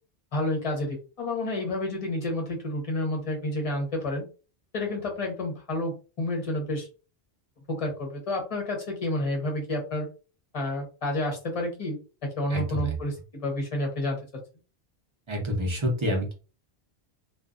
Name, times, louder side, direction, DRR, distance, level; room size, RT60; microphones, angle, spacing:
voice 1, 0.3-4.2 4.7-6.9 7.7-10.1 10.5-12.0 12.4-14.2, left 1 dB, 35° left, 0 dB, 0.9 m, -30 dB
voice 2, 12.5-13.0 15.3-16.3, equal, 30° right, 0 dB, 0.8 m, -28 dB
2.5 x 2.4 x 2.4 m, 0.34 s
omnidirectional pair, 1.1 m